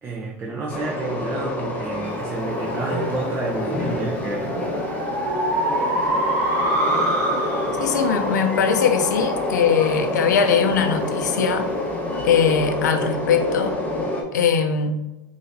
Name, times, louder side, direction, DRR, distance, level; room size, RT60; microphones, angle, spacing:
voice 1, 0.0-4.6, right 3 dB, 25° right, -2 dB, 0.8 m, -30 dB
Train, 0.7-14.2, left 1 dB, 15° left, 1.0 m, -27 dB
sound 1, 2.2-11.0, right 1 dB, 70° right, 1.3 m, -27 dB
voice 2, 7.8-11.7 12.2-13.8 14.3-15.0, left 7 dB, 85° left, 7 dB, 0.6 m, -20 dB
5.6 x 2.7 x 2.7 m, 1.0 s
hypercardioid pair, 105°, 9 cm